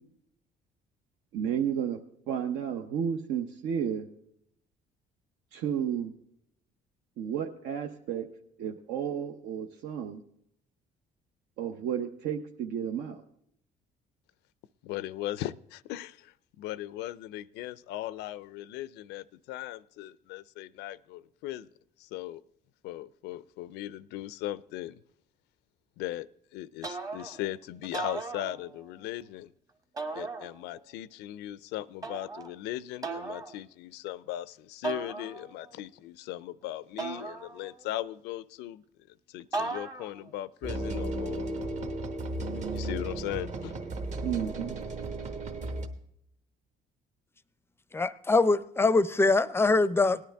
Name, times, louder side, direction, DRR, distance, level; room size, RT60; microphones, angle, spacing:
voice 1, 1.3-2.0 2.3-4.1 5.5-6.1 7.2-8.3 8.6-10.2 11.6-13.2 44.2-44.8, right 8 dB, 80° right, 0.7 m, -32 dB
voice 2, 14.8-21.7 22.0-22.4 22.8-25.0 26.0-29.5 30.1-41.5 42.4-43.8, left 14 dB, 85° left, 0.4 m, -38 dB
sound 1, 26.8-27.5 27.8-29.0 30.0-30.9 32.0-32.5 33.0-33.5 34.8-35.7 37.0-38.0 39.5-40.3, right 3 dB, 20° right, 1.0 m, -37 dB
sound 2, 40.6-45.9, right 2 dB, 45° right, 1.2 m, -34 dB
voice 3, 47.9-50.2, left 3 dB, 15° left, 0.4 m, -23 dB
18.0 x 10.5 x 3.4 m
cardioid pair, 110°, 17 cm